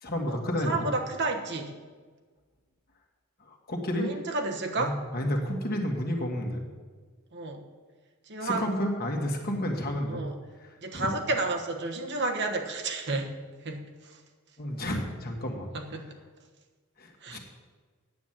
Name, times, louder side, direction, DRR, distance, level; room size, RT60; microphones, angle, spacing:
voice 1, 0.0-0.9 3.4-4.2 4.8-6.6 8.4-10.2 10.6-11.1 14.6-15.7 17.0-17.4, equal, 45° left, 1 dB, 1.8 m, -31 dB
voice 2, 0.6-1.7 4.0-4.9 7.3-7.6 8.3-8.7 10.1-10.4 10.8-13.3 13.6-13.9 15.7-16.1 17.2-17.4, right 3 dB, 55° right, 3 dB, 1.2 m, -31 dB
9.4 x 8.3 x 7.6 m, 1.5 s
head